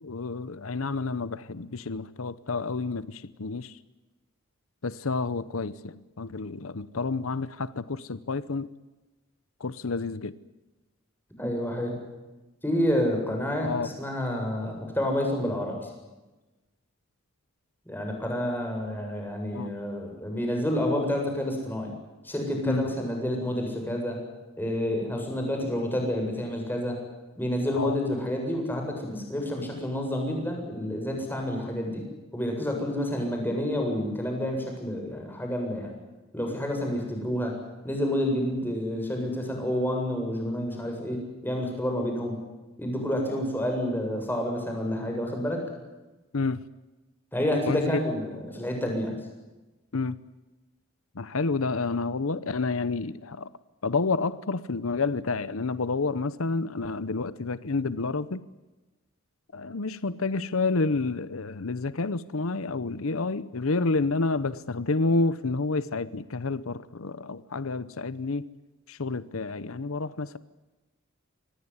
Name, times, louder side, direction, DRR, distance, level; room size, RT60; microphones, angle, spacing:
voice 1, 0.0-3.8 4.8-8.7 9.6-10.4 13.6-13.9 19.5-19.8 22.7-22.9 25.5-25.7 27.7-28.0 46.3-46.6 47.7-48.0 49.9-50.2 51.1-53.5 53.8-58.4 59.5-68.5 68.9-70.4, left 3 dB, 85° left, 16 dB, 0.9 m, -29 dB
voice 2, 11.4-11.9 12.6-15.7 17.9-21.9 22.2-24.2 24.6-27.0 27.4-32.0 32.3-35.9 36.3-37.5 37.8-42.4 42.8-45.6 47.3-49.1, left 1 dB, 10° left, 1 dB, 7.6 m, -29 dB
25.5 x 20.0 x 9.6 m, 1.1 s
head